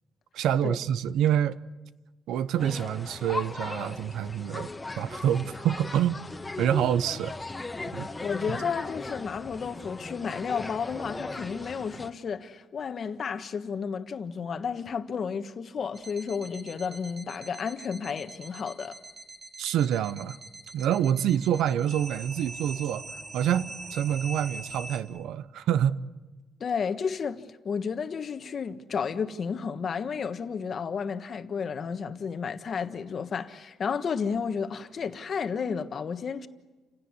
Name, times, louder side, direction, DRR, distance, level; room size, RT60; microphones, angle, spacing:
voice 1, 0.3-1.6 2.3-4.7 5.0-6.2 6.6-7.3 7.9-8.1 19.6-20.4 20.7-23.1 23.3-26.0, right 10 dB, 85° right, 0.8 m, -27 dB
sound 1, 2.6-12.1, left 3 dB, 15° left, 1.5 m, -38 dB
voice 2, 8.2-19.0 26.6-36.5, left 6 dB, 45° left, 1.4 m, -32 dB
sound 2, 15.9-25.0, right 2 dB, 30° right, 2.9 m, -43 dB
29.5 x 17.0 x 9.7 m
cardioid pair, 115°, 0 cm